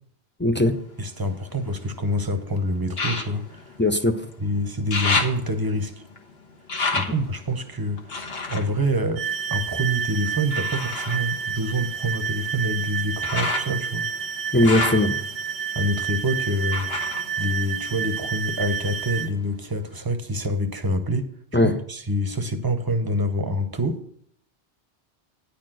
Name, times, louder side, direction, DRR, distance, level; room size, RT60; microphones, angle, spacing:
voice 1, 0.4-0.8 3.8-4.3 14.5-15.2 21.5-21.8, left 1 dB, 20° left, 0.3 m, -19 dB
sound 1, 0.7-2.1 2.9-4.4 4.7-9.8 10.5-18.3 18.6-19.5 20.0-20.1, left 3 dB, 60° left, 1.4 m, -31 dB
voice 2, 1.0-3.6 4.4-5.9 6.9-8.1 8.5-14.2 15.7-16.9 17.4-21.3 21.9-24.0, equal, 20° right, 0.8 m, -26 dB
sound 2, 9.2-19.3, right 7 dB, 55° right, 0.6 m, -29 dB
10.0 x 4.3 x 7.6 m
omnidirectional pair, 1.2 m